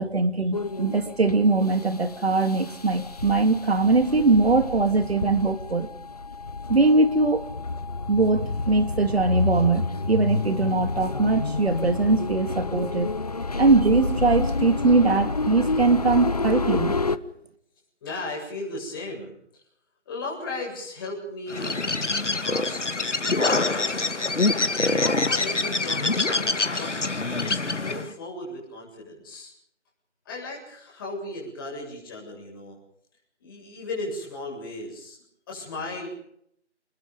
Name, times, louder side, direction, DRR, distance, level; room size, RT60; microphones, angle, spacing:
voice 1, 0.0-5.9 6.7-7.5 8.1-13.1 13.6-17.0, right 3 dB, 60° right, 8 dB, 3.2 m, -21 dB
sound 1, 0.5-17.2, left 3 dB, 35° left, 0.8 m, -29 dB
voice 2, 18.0-19.3 20.1-21.8 22.4-24.2 24.7-27.0 27.3-29.5 30.2-32.8 33.4-35.2 35.5-36.1, left 2 dB, 20° left, -2 dB, 7.8 m, -36 dB
Bird, 21.5-28.1, left 3 dB, 90° left, 2.2 m, -25 dB
29.0 x 21.0 x 5.3 m, 0.71 s
figure-of-eight pair, 170°, 35 cm